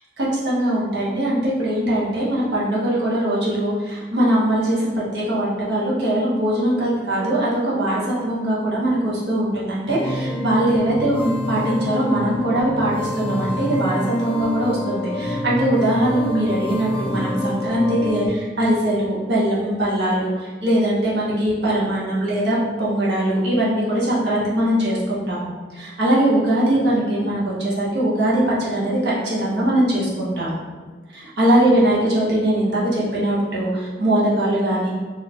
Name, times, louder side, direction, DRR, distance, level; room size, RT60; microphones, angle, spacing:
voice 1, 0.2-30.6 31.1-34.9, right 1 dB, 70° right, -7 dB, 1.2 m, -21 dB
sound 1, 9.9-18.3, equal, 30° left, 0.5 m, -27 dB
4.2 x 2.9 x 2.8 m, 1.5 s
head